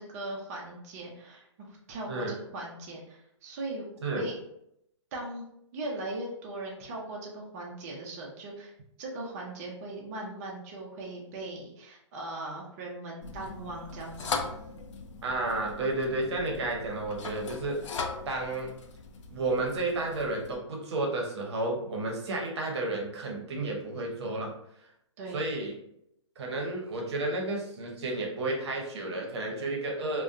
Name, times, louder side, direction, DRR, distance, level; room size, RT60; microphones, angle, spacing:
voice 1, 0.0-4.4 5.1-5.4 5.7-8.7 9.0-14.5 25.2-25.5, right 2 dB, 30° right, -2 dB, 0.5 m, -39 dB
sound 1, 13.2-20.5, left 4 dB, 70° left, 0.4 m, -39 dB
voice 2, 15.2-17.8 18.3-18.7 19.3-24.5 25.3-25.7 26.4-30.2, right 2 dB, 60° right, 0 dB, 0.8 m, -31 dB
2.6 x 2.1 x 2.4 m, 0.77 s
hypercardioid pair, 145°, 16 cm